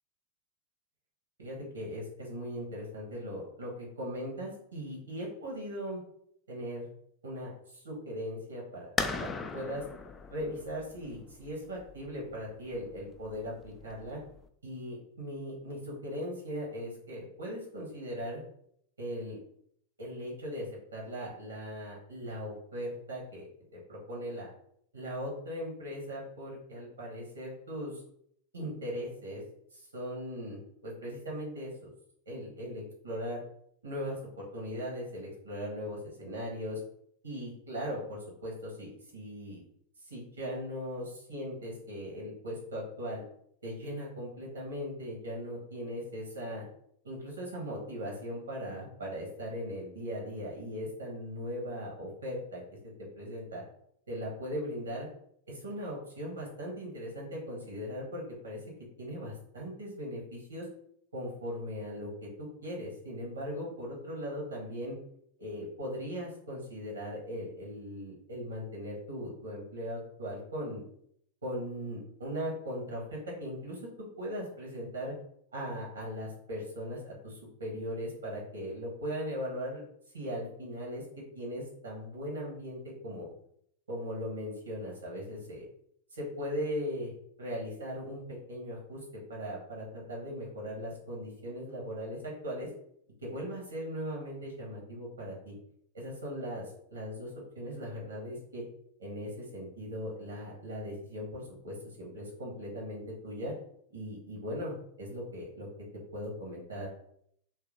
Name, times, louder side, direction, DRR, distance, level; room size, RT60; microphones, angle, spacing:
voice 1, 1.4-6.0 6.5-6.9 7.2-9.8 10.3-14.2 14.6-18.4 19.0-19.4 20.0-23.5 23.7-24.5 24.9-28.0 28.5-29.4 29.7-31.9 32.3-33.4 33.8-36.8 37.2-39.6 40.0-43.2 43.6-46.6 47.0-52.6 53.1-53.6 54.1-55.1 55.5-58.6 59.0-60.7 61.1-62.1 62.4-64.9 65.4-70.8 71.4-73.8 74.2-75.1 75.5-79.8 80.1-83.3 83.9-85.7 86.1-87.1 87.4-89.0 89.3-92.7 93.2-95.5 95.9-96.6 96.9-97.3 97.5-98.6 99.0-103.5 103.9-105.7 106.1-106.9, equal, 75° right, -3 dB, 1.2 m, -39 dB
sound 1, 9.0-14.5, left 4 dB, 20° left, 0.3 m, -39 dB
2.9 x 2.8 x 3.8 m, 0.69 s
figure-of-eight pair, 90°, 0 cm